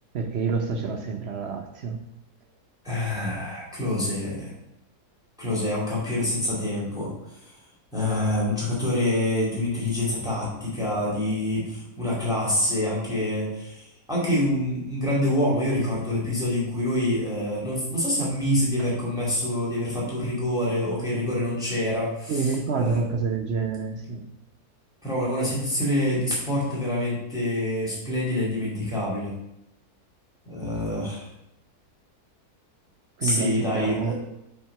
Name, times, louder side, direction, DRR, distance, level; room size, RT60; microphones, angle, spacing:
voice 1, 0.1-2.0 18.8-18.9 22.3-24.3 33.2-34.1, right 5 dB, 55° right, 5 dB, 0.8 m, -28 dB
voice 2, 2.8-4.5 5.4-7.6 7.9-23.0 25.0-29.3 30.5-31.3 33.2-34.1, left 1 dB, ahead, -6 dB, 2.2 m, -26 dB
7.4 x 3.6 x 5.7 m, 0.87 s
omnidirectional pair, 1.7 m